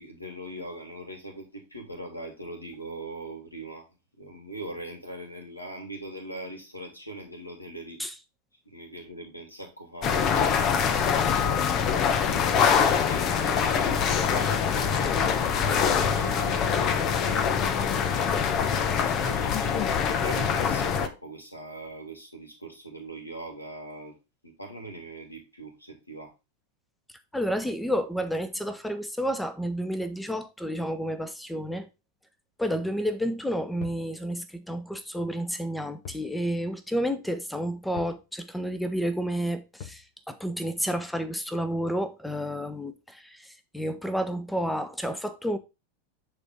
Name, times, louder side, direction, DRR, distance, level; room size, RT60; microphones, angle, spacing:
voice 1, 0.0-3.9 4.2-8.0 8.6-15.1 15.6-18.1 18.9-19.8 20.2-24.2 24.4-26.3 32.8-33.0, right 1 dB, 85° left, 3.0 m, -41 dB
sound 1, 10.0-21.1, left 7 dB, 35° left, 1.0 m, -24 dB
voice 2, 27.3-31.9 32.6-45.6, equal, 5° left, 1.1 m, -30 dB
sound 2, 33.8-34.1 36.0-36.3 36.6-36.7 38.0-38.2 39.8-40.1, left 8 dB, 50° left, 1.7 m, -43 dB
9.8 x 4.2 x 3.7 m
figure-of-eight pair, 90°, 0 cm